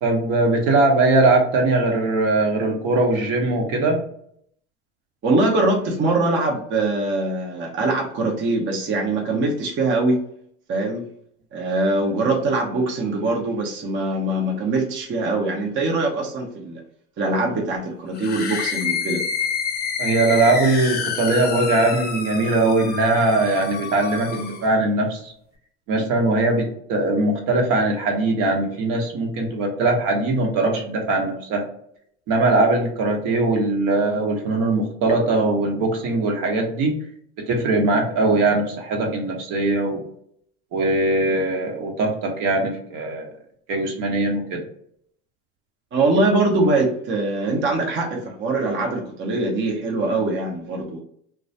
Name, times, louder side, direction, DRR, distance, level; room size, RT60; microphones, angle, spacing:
voice 1, 0.0-4.0 20.0-25.3 25.9-31.6 32.3-36.9 37.5-40.0 40.7-43.3 43.7-44.6, right 2 dB, 65° right, 1 dB, 0.9 m, -21 dB
voice 2, 5.2-10.2 10.7-11.1 11.5-16.8 17.2-19.2 45.9-51.0, right 2 dB, 35° right, 0 dB, 0.6 m, -22 dB
sound 1, 18.1-24.7, left 6 dB, 30° left, 0.6 m, -28 dB
2.3 x 2.2 x 2.6 m, 0.67 s
hypercardioid pair, 85°, 34 cm